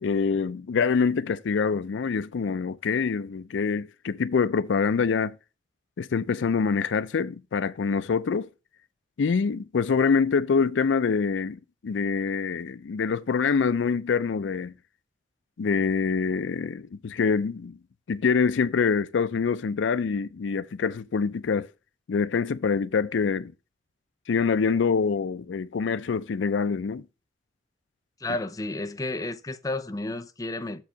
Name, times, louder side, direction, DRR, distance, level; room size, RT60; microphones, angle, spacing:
voice 1, 0.0-5.4 6.0-8.5 9.2-14.7 15.6-17.8 18.1-21.7 22.1-23.5 24.3-27.0, left 5 dB, 85° left, 0.4 m, -25 dB
voice 2, 28.2-30.8, left 2 dB, 20° left, 0.5 m, -32 dB
7.1 x 4.6 x 5.0 m
head